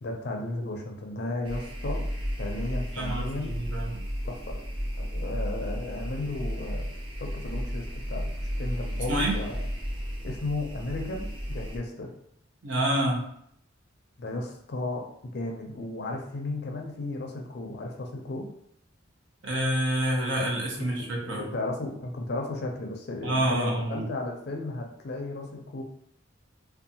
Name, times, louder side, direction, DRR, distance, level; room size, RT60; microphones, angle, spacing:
voice 1, 0.0-2.1 2.4-3.6 4.2-4.6 5.0-6.9 7.2-9.6 10.2-12.1 14.2-15.0 15.3-18.5 20.8-20.9 21.2-25.8, left 2 dB, 50° left, 2 dB, 0.4 m, -34 dB
sound 1, 1.4-11.8, equal, 25° right, 0.4 m, -33 dB
voice 2, 2.9-4.1 9.1-9.4 12.6-13.2 19.4-21.5 23.2-24.1, right 1 dB, 65° right, -2 dB, 0.7 m, -28 dB
2.6 x 2.2 x 2.7 m, 0.70 s
head